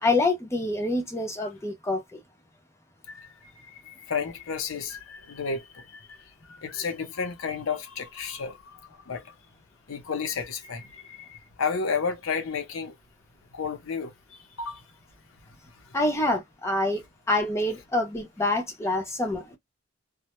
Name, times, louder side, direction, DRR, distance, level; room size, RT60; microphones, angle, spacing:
voice 1, 0.0-2.2 15.9-17.0 17.3-19.6, left 2 dB, 15° left, 0.6 m, -26 dB
voice 2, 3.1-9.3 9.9-13.0 13.5-14.8 15.8-15.9, left 5 dB, 80° left, 0.6 m, -33 dB
2.1 x 2.0 x 2.9 m
head